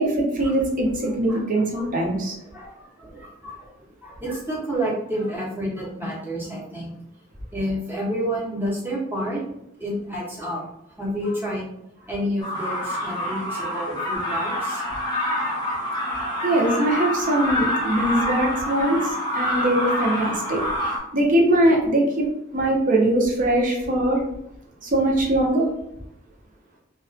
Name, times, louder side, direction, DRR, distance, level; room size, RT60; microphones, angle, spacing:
voice 1, 0.0-2.3 16.4-20.6 21.1-22.3 22.5-24.2 24.8-25.7, right 1 dB, 40° right, -1 dB, 0.6 m, -21 dB
voice 2, 2.4-3.7 4.0-6.9 7.5-9.4 9.8-10.6 11.0-11.7 12.0-14.9, equal, 10° right, -6 dB, 0.7 m, -29 dB
sound 1, 12.4-21.0, left 1 dB, 20° left, 0.6 m, -27 dB
2.3 x 2.3 x 2.4 m, 0.78 s
head